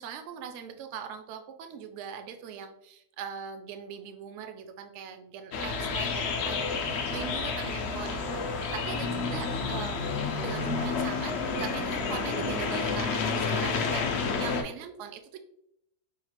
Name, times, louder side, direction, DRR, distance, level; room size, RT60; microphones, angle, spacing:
voice 1, 0.0-15.4, right 8 dB, 65° right, 6 dB, 0.7 m, -41 dB
sound 1, 5.5-14.6, left 4 dB, 70° left, 0.6 m, -30 dB
5.0 x 2.4 x 2.9 m, 0.75 s
omnidirectional pair, 1.6 m